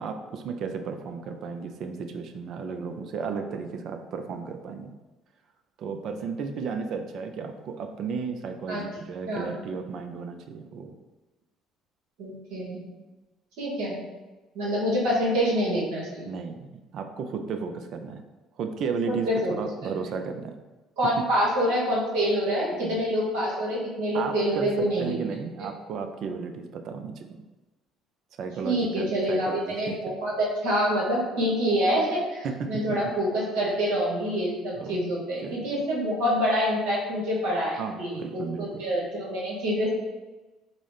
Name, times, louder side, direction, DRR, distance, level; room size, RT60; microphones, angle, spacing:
voice 1, 0.0-4.9 5.8-10.9 16.3-16.7 16.9-18.2 18.6-19.3 19.6-20.5 22.7-23.0 24.1-27.2 28.4-30.0 32.4-33.0 34.8-35.0 35.4-35.8 37.8-38.8, right 5 dB, 60° right, 6 dB, 0.3 m, -34 dB
voice 2, 12.2-12.8 13.6-14.0 14.5-16.3 19.1-19.5 19.8-19.9 21.0-25.1 28.6-39.9, equal, 75° right, -5 dB, 1.1 m, -26 dB
3.7 x 2.0 x 3.1 m, 1.2 s
hypercardioid pair, 60°, 0 cm